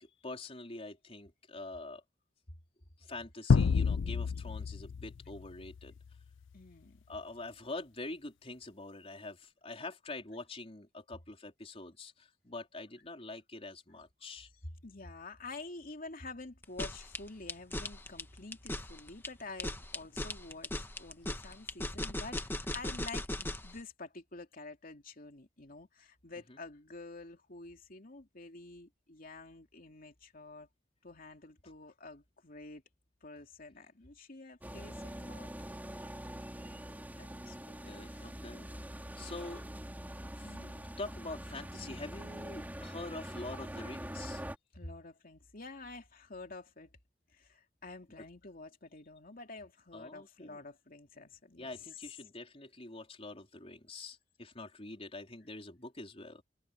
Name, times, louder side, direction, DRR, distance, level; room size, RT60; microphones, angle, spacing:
voice 1, 0.0-2.0 3.0-5.9 7.1-14.5 26.5-26.6 37.8-39.6 40.3-44.4 49.9-50.7 51.6-56.4, left 2 dB, 30° left, 4.2 m, -45 dB
sound 1, 3.5-6.1, left 5 dB, 90° left, 0.4 m, -29 dB
voice 2, 6.5-7.0 14.6-30.7 31.0-32.8 33.2-35.5 36.6-36.8 37.2-38.3 39.3-39.5 40.4-40.8 44.7-46.9 47.3-51.8, left 3 dB, 50° left, 2.8 m, -49 dB
sound 2, 16.6-23.7, left 1 dB, 10° left, 1.4 m, -38 dB
sound 3, 34.6-44.6, equal, 10° right, 2.8 m, -44 dB
head